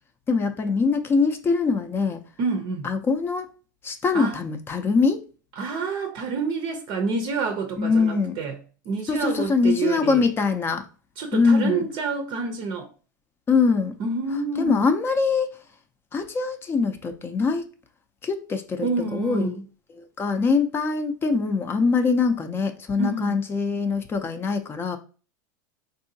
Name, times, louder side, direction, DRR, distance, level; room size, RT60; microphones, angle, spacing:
voice 1, 0.3-2.2 2.8-3.5 3.8-5.2 7.8-8.4 9.1-10.9 11.3-11.8 13.5-14.0 14.6-15.5 16.1-17.6 18.2-19.6 20.0-25.0, left 4 dB, 20° left, 0.5 m, -23 dB
voice 2, 2.4-2.9 4.1-4.4 5.6-8.6 8.9-10.2 11.2-12.9 14.0-14.8 18.8-19.6 23.0-23.4, right 4 dB, 45° right, 0.6 m, -28 dB
3.6 x 2.7 x 2.7 m
hypercardioid pair, 115°, 11 cm